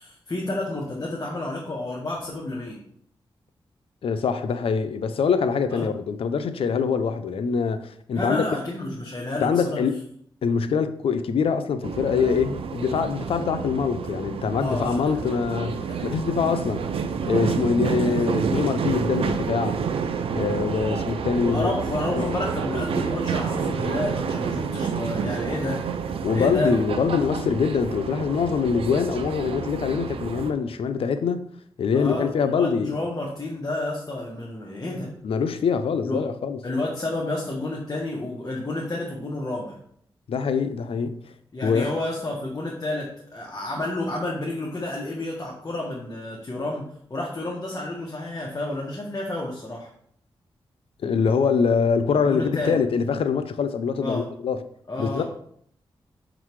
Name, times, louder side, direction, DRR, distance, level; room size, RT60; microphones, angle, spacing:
voice 1, 0.0-2.8 5.7-5.9 8.1-9.8 14.6-15.4 15.8-16.2 21.4-25.8 26.3-26.7 31.9-35.1 36.0-36.2 36.6-39.8 41.5-49.9 52.3-52.8 54.0-54.3 54.9-55.2, left 2 dB, 40° left, 1.5 m, -30 dB
voice 2, 4.0-8.4 9.4-10.0 10.4-16.8 17.2-19.8 20.3-21.7 22.2-22.3 26.2-31.5 31.8-32.9 35.2-36.6 40.3-41.2 41.6-41.9 51.0-54.6 55.0-55.2, left 6 dB, 80° left, 0.6 m, -24 dB
sound 1, 11.8-30.5, right 6 dB, 85° right, 0.5 m, -29 dB
6.4 x 4.0 x 4.7 m
cardioid pair, 75°, 9 cm